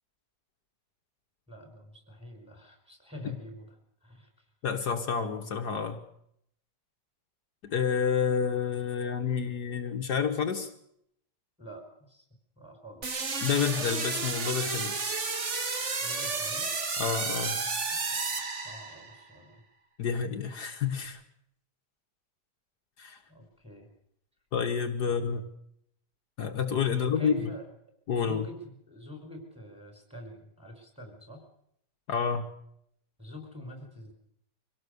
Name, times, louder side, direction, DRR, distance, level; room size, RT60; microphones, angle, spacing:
voice 1, 1.5-3.7 4.0-4.4 11.6-12.3 12.6-13.2 16.0-16.7 17.9-19.6 23.3-23.9 25.0-25.3 26.9-27.7 28.1-31.4 33.2-34.1, equal, 5° right, 3 dB, 5.2 m, -46 dB
voice 2, 4.6-6.0 7.6-10.7 13.4-15.0 17.0-17.6 20.0-21.2 23.0-23.2 24.5-25.5 26.4-27.4 28.1-28.4 32.1-32.5, left 6 dB, 70° left, 4 dB, 1.7 m, -29 dB
sound 1, 13.0-19.2, right 4 dB, 45° right, 1.9 m, -32 dB
24.5 x 17.5 x 6.7 m, 0.73 s
omnidirectional pair, 1.9 m